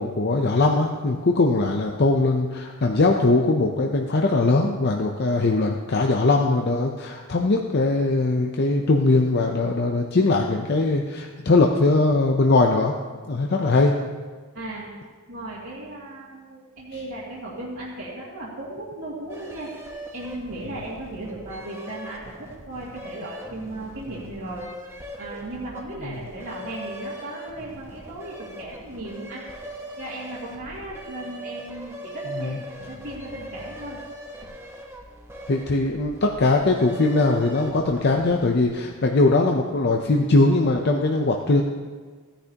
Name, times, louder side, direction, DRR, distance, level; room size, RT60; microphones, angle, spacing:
voice 1, 0.0-12.9 13.3-14.0 26.0-26.2 32.3-32.6 35.5-41.6, left 2 dB, 45° left, 2 dB, 0.6 m, -21 dB
voice 2, 14.5-14.9 15.3-19.7 20.1-24.7 25.2-29.4 30.0-34.0, right 1 dB, 60° right, -8 dB, 2.1 m, -36 dB
sound 1, 19.3-38.7, equal, 10° right, 1.0 m, -40 dB
15.5 x 10.0 x 2.9 m, 1.5 s
head